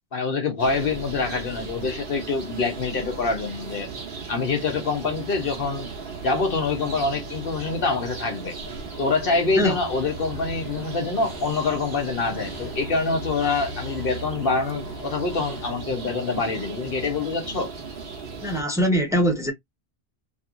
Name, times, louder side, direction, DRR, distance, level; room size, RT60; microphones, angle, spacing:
voice 1, 0.1-3.9 4.3-5.9 6.2-8.6 9.0-17.7, left 4 dB, 65° left, 1.1 m, -25 dB
sound 1, 0.6-18.6, right 4 dB, 65° right, 1.2 m, -37 dB
sound 2, 4.8-15.9, left 1 dB, 90° left, 1.4 m, -41 dB
voice 2, 18.4-19.5, equal, 5° right, 1.0 m, -22 dB
3.1 x 2.9 x 2.5 m
omnidirectional pair, 1.0 m